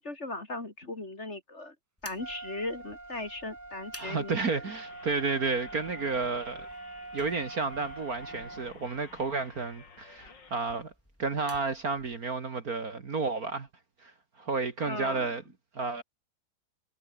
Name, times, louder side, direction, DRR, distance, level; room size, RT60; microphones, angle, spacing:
voice 1, 0.0-1.8 2.0-4.6 14.8-15.3, left 2 dB, 30° left, 3.6 m, -38 dB
sound 1, 2.0-12.3, equal, 5° left, 7.8 m, -55 dB
Trumpet, 2.2-8.7, right 2 dB, 25° right, 0.3 m, -44 dB
voice 2, 4.0-6.7 7.1-10.9 11.2-13.7 14.0-14.1 14.4-15.4 15.7-16.0, right 4 dB, 45° right, 2.3 m, -31 dB
sound 2, 4.7-10.6, left 5 dB, 55° left, 3.6 m, -52 dB
omnidirectional pair, 2.3 m